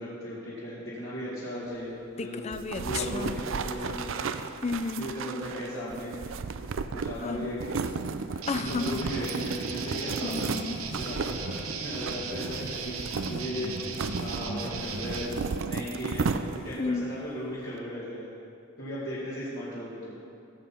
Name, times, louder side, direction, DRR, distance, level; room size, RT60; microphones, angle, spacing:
voice 1, 0.0-2.5 2.8-4.5 5.0-6.2 6.9-10.3 10.9-13.7 14.2-15.3 15.6-16.3 16.6-18.3 18.8-20.1, equal, 50° left, -10 dB, 2.1 m, -36 dB
voice 2, 2.2-3.4 4.6-5.1 7.2-7.5 8.5-9.0 10.2-10.8 16.8-17.1, left 4 dB, 30° left, 10 dB, 0.4 m, -32 dB
sound 1, 2.5-16.9, right 5 dB, 65° right, 0.5 m, -34 dB
sound 2, 8.4-15.3, right 4 dB, 90° right, 0.9 m, -36 dB
15.0 x 7.5 x 4.4 m, 2.6 s
head